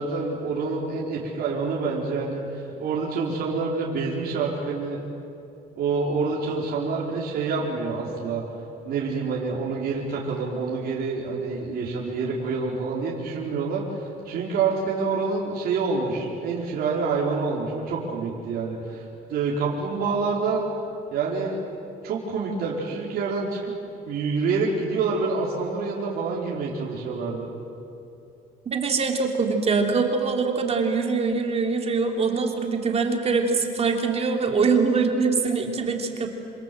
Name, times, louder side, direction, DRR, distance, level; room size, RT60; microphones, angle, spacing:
voice 1, 0.0-5.0 5.8-8.4 8.8-19.0 19.3-20.7 21.1-21.6 22.0-23.7 24.0-27.5, right 4 dB, 65° right, -4 dB, 4.6 m, -27 dB
voice 2, 28.7-36.3, right 4 dB, 40° right, 3 dB, 3.3 m, -23 dB
27.0 x 27.0 x 7.9 m, 2.7 s
cardioid pair, 110°, 17 cm